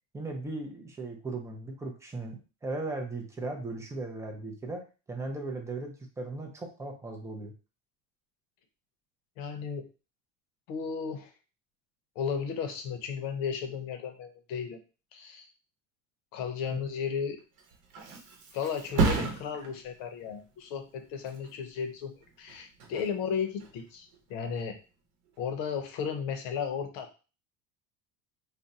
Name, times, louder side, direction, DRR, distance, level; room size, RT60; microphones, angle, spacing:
voice 1, 0.1-4.8 5.1-7.5 16.7-16.8, right 2 dB, 10° right, 1 dB, 0.4 m, -37 dB
voice 2, 9.4-9.8 10.7-11.3 12.2-14.8 15.1-15.5 16.3-17.4 18.5-24.8 25.4-27.1, left 6 dB, 65° left, 6 dB, 0.8 m, -34 dB
Thump thud, 17.4-24.9 25.3-25.7, right 4 dB, 55° right, 0.9 m, -35 dB
2.5 x 2.2 x 4.0 m, 0.33 s
cardioid pair, 155°, 38 cm